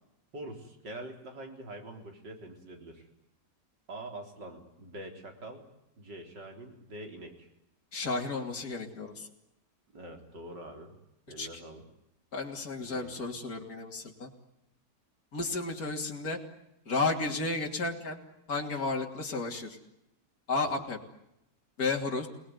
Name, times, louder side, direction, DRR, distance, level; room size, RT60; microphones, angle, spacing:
voice 1, 0.3-3.1 3.9-5.7 6.0-7.5 9.9-10.9 11.3-11.8 12.8-13.2 20.8-20.9, right 1 dB, 85° right, 3 dB, 4.6 m, -45 dB
voice 2, 7.9-9.3 11.4-11.5 12.3-14.3 15.3-16.4 16.8-18.2 18.5-19.8 20.5-21.0 21.8-22.3, left 3 dB, 55° left, 1 dB, 3.5 m, -32 dB
28.5 x 19.5 x 9.7 m, 0.86 s
omnidirectional pair, 1.8 m